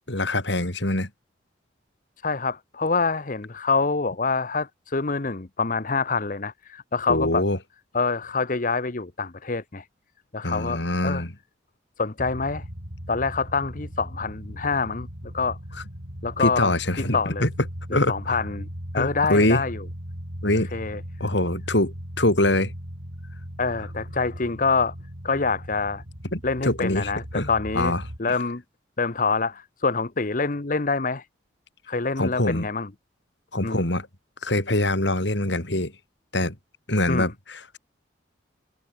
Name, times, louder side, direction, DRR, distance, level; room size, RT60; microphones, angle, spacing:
voice 1, 0.1-1.1 7.1-7.6 10.4-11.3 16.4-17.5 17.9-18.4 19.0-19.6 20.4-20.7 21.2-22.7 26.3-27.5 27.7-28.0 32.2-32.7 33.5-34.1 34.4-35.9 36.3-36.5 36.9-37.8, left 1 dB, 65° left, 4.2 m, -24 dB
voice 2, 2.2-7.4 7.9-9.9 10.3-11.2 12.0-12.6 13.1-15.1 15.3-15.6 16.2-16.7 17.1-17.5 17.9-18.7 18.9-19.8 20.7-21.0 23.6-24.9 25.2-26.0 26.4-27.9 28.2-28.6 29.0-31.3 31.9-32.9 33.6-33.8 37.1-37.3, left 4 dB, 45° left, 1.0 m, -26 dB
sound 1, 12.2-28.2, equal, 70° right, 7.7 m, -38 dB
head